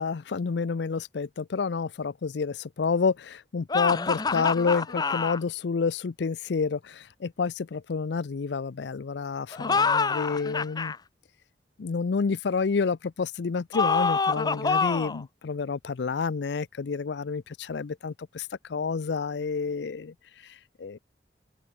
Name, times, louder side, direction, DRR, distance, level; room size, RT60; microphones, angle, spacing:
voice 1, 0.0-10.9 11.8-21.0, left 5 dB, 80° left, 0.5 m, -29 dB
sound 1, 3.7-5.4 9.5-11.0 13.7-15.2, left 4 dB, 25° left, 0.5 m, -26 dB
open air
head